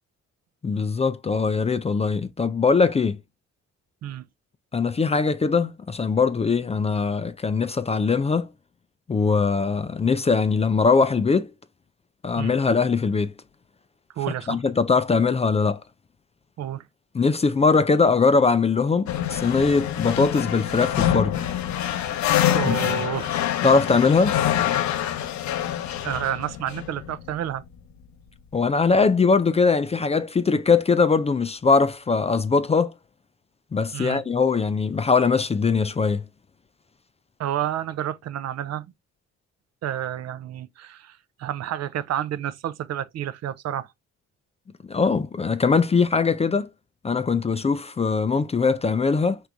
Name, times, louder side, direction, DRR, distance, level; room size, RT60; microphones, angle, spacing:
voice 1, 0.6-3.2 4.7-8.5 9.1-11.5 12.2-13.3 14.5-15.8 17.1-21.4 22.6-22.9 23.6-24.4 28.5-32.9 33.7-36.2 44.8-46.7 47.0-49.4, left 4 dB, 20° left, 0.4 m, -21 dB
voice 2, 14.1-14.6 16.6-16.8 22.5-23.3 24.9-25.2 26.0-27.6 33.9-34.2 37.4-38.9 39.8-43.9, right 11 dB, 60° right, 0.5 m, -30 dB
sound 1, 19.1-27.7, left 11 dB, 70° left, 0.7 m, -26 dB
4.5 x 3.5 x 2.5 m
cardioid pair, 90°, 30 cm